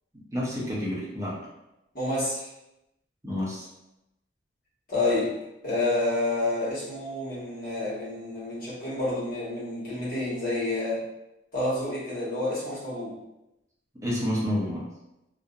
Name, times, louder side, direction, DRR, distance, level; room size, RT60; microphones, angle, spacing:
voice 1, 0.3-1.4 3.2-3.7 14.0-14.9, left 1 dB, 15° right, -6 dB, 0.6 m, -29 dB
voice 2, 1.9-2.5 4.9-5.3 5.6-11.0 11.5-13.1, left 2 dB, 50° left, -8 dB, 1.2 m, -29 dB
2.6 x 2.0 x 2.4 m, 0.90 s
head